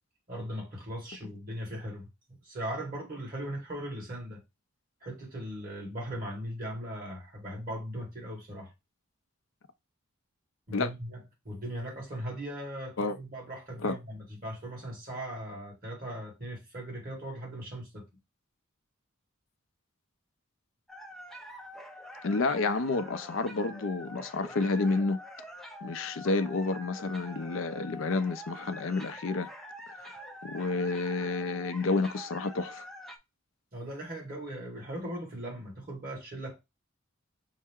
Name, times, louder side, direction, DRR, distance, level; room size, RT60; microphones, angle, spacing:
voice 1, 0.3-4.4 5.0-8.7 10.7-18.0 33.7-36.6, right 1 dB, 40° right, 2.0 m, -39 dB
sound 1, 20.9-33.2, equal, ahead, 0.4 m, -46 dB
voice 2, 22.2-25.2 25.8-29.5 30.0-30.1 30.4-32.8, left 3 dB, 65° left, 0.5 m, -30 dB
5.4 x 2.1 x 3.5 m
head